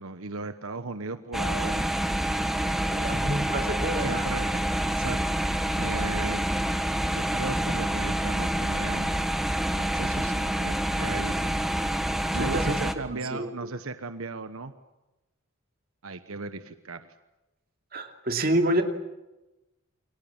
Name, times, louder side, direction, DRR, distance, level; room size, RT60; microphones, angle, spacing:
voice 1, 0.0-1.8 2.6-3.2 4.0-4.5 5.0-5.2 5.8-6.5 7.1-9.3 9.7-11.5 12.3-14.7 16.0-17.1, right 3 dB, 80° right, 9 dB, 1.2 m, -36 dB
sound 1, 1.3-12.9, right 1 dB, ahead, 1.4 m, -27 dB
voice 2, 2.9-4.2 11.0-11.5 12.4-12.8 13.3-13.5 17.9-18.8, right 1 dB, 45° right, 5 dB, 2.7 m, -28 dB
29.5 x 23.5 x 7.3 m, 1.0 s
head